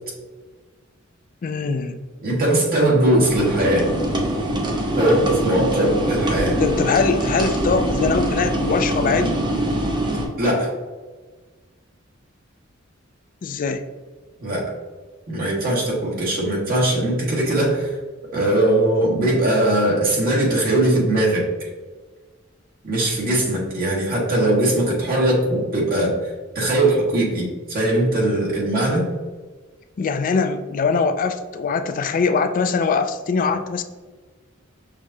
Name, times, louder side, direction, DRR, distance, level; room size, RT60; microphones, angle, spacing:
voice 1, 1.4-2.0 6.6-9.4 13.4-13.8 30.0-33.8, left 4 dB, 40° left, 9 dB, 0.3 m, -22 dB
voice 2, 2.2-3.9 4.9-6.6 10.4-10.7 14.4-14.6 15.3-17.9 18.3-21.5 22.8-26.1 26.5-29.1, right 1 dB, 45° right, -5 dB, 1.4 m, -20 dB
sound 1, 3.2-10.3, right 1 dB, 20° right, 0.6 m, -23 dB
6.3 x 2.4 x 2.6 m, 1.3 s
head